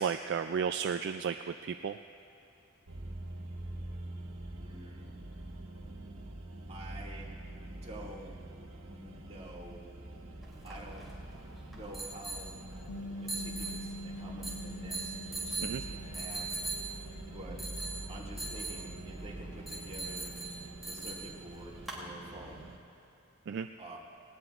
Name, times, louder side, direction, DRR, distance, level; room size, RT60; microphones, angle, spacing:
voice 1, 0.0-1.4 1.6-2.0 15.6-15.8 23.5-23.7, right 7 dB, 55° right, 8 dB, 0.3 m, -33 dB
sound 1, 2.9-22.8, right 1 dB, 75° right, 1.2 m, -45 dB
voice 2, 4.6-5.1 6.7-7.4 7.8-8.3 8.9-9.8 10.6-11.1 11.7-12.5 13.2-16.5 17.3-17.6 18.1-20.3 20.9-22.7 23.8-24.0, right 1 dB, 30° right, -4 dB, 2.2 m, -48 dB
sound 2, 10.4-22.0, right 3 dB, ahead, 2.9 m, -42 dB
Bass guitar, 12.9-19.1, left 1 dB, 75° left, 0.7 m, -46 dB
19.5 x 19.0 x 2.5 m, 2.7 s
head